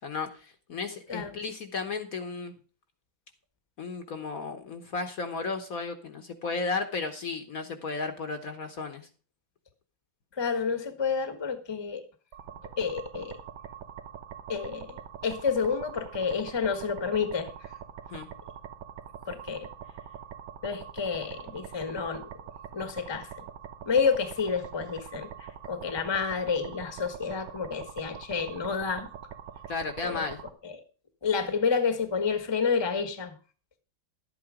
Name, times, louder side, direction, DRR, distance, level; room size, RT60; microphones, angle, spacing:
voice 1, 0.0-2.5 3.8-9.0 18.1-18.3 29.7-30.4, left 4 dB, 50° left, 1.4 m, -34 dB
voice 2, 10.3-12.0 12.8-13.4 14.5-17.7 19.2-19.7 20.6-22.3 22.7-23.4 23.8-29.1 30.0-30.3 30.6-30.8 31.2-33.3, left 5 dB, 15° left, 1.1 m, -29 dB
sound 1, 12.3-30.5, right 9 dB, 90° right, 1.9 m, -44 dB
11.5 x 8.8 x 5.0 m
omnidirectional pair, 2.1 m